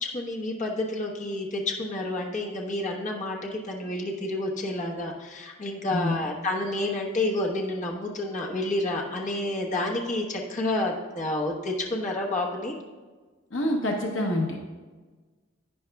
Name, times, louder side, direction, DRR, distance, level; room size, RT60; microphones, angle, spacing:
voice 1, 0.0-12.8, left 2 dB, 35° left, -1 dB, 1.1 m, -29 dB
voice 2, 13.5-14.6, left 1 dB, 60° left, 1 dB, 0.9 m, -26 dB
11.0 x 9.4 x 2.3 m, 1.4 s
head